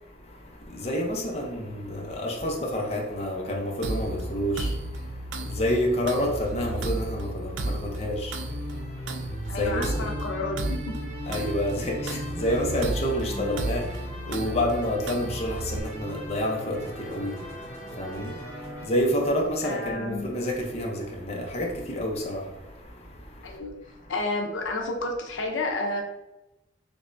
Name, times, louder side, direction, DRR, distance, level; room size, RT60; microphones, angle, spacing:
voice 1, 0.0-10.2 11.2-24.1, equal, 35° left, 0.6 m, -29 dB
sound 1, 3.8-15.8, right 1 dB, 80° right, 0.3 m, -33 dB
sound 2, 8.5-18.9, equal, 15° left, 1.0 m, -39 dB
voice 2, 9.5-10.9 19.6-20.3 23.4-23.7 24.1-26.0, left 2 dB, 85° left, 0.5 m, -30 dB
3.3 x 3.2 x 2.5 m
head